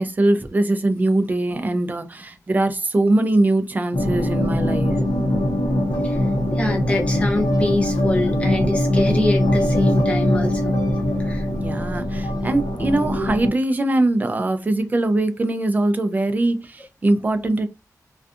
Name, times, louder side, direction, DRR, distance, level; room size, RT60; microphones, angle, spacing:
voice 1, 0.0-4.9 11.5-17.7, right 2 dB, 25° right, 0.3 m, -21 dB
sound 1, 3.9-13.5, left 1 dB, 85° left, 0.8 m, -21 dB
voice 2, 6.5-10.7 11.2-11.5, left 2 dB, 20° left, 0.7 m, -25 dB
2.6 x 2.3 x 2.4 m
wide cardioid pair, 140°, 6 cm